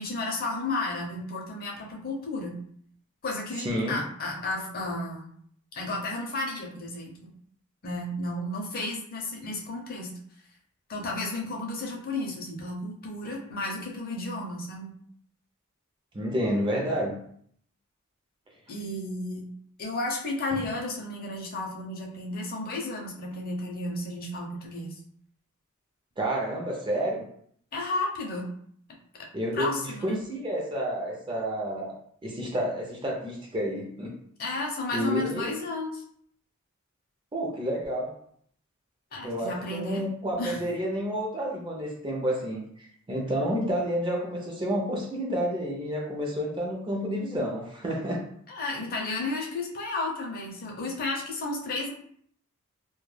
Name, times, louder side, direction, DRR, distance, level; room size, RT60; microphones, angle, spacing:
voice 1, 0.0-2.6 3.2-5.3 5.7-7.2 7.8-10.1 10.9-14.9 18.7-19.4 19.8-24.9 27.7-28.5 29.2-29.3 29.5-30.2 34.4-36.0 39.1-40.0 40.4-40.6 48.5-51.9, left 2 dB, 45° left, 0 dB, 0.5 m, -33 dB
voice 2, 3.6-4.0 16.1-17.2 26.2-27.2 29.3-31.9 32.2-34.1 34.9-35.6 37.3-38.1 39.2-48.2, equal, 20° right, 0 dB, 0.4 m, -30 dB
2.2 x 2.1 x 3.2 m, 0.63 s
head